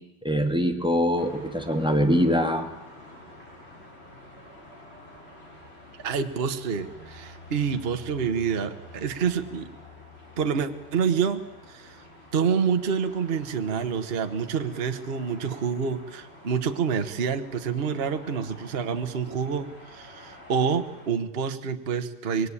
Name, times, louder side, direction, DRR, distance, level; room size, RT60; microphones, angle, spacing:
voice 1, 0.2-2.7, equal, ahead, 6 dB, 2.0 m, -23 dB
sound 1, 1.2-21.1, left 1 dB, 25° left, 6.1 m, -48 dB
voice 2, 6.0-9.7 10.4-11.4 11.7-12.0 12.3-22.5, right 6 dB, 35° right, 7 dB, 1.3 m, -27 dB
25.0 x 21.5 x 9.9 m, 0.92 s
omnidirectional pair, 2.4 m